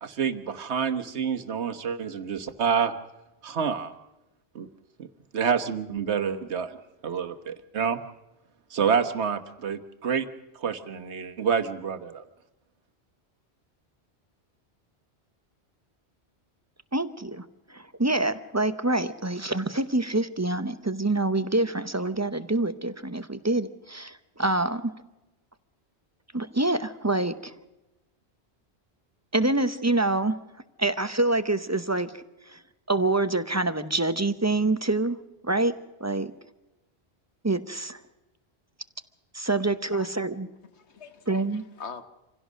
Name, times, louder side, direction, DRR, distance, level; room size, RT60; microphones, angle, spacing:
voice 1, 0.0-2.9 3.4-3.9 4.5-4.7 5.0-5.1 5.3-6.8 7.0-8.0 8.7-10.3 10.5-12.2, right 6 dB, 85° right, 7 dB, 1.4 m, -28 dB
voice 2, 16.9-17.4 17.7-24.9 26.3-27.5 29.3-30.4 30.8-32.2 32.5-32.6 32.9-35.2 35.4-35.7 36.0-36.3 37.4-38.0 39.3-40.5 41.3-41.6, right 2 dB, 15° right, 11 dB, 0.7 m, -26 dB
voice 3, 40.7-42.0, left 5 dB, 85° left, 9 dB, 1.5 m, -43 dB
27.0 x 16.5 x 6.3 m, 1.0 s
omnidirectional pair, 1.1 m